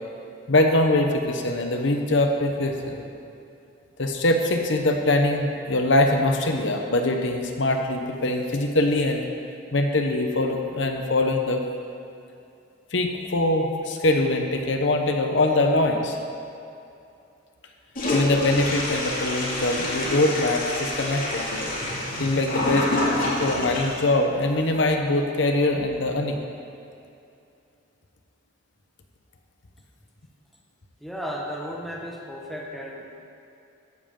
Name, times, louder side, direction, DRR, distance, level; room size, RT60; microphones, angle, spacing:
voice 1, 0.5-3.0 4.0-9.2 9.7-11.6 12.9-16.2 18.1-21.7 22.2-26.4, left 2 dB, 65° left, 4 dB, 0.9 m, -23 dB
Toilet flush, 17.9-24.0, left 1 dB, 45° left, 2.4 m, -27 dB
voice 2, 31.0-33.2, equal, ahead, -2 dB, 1.2 m, -34 dB
14.0 x 10.5 x 3.8 m, 2.7 s
head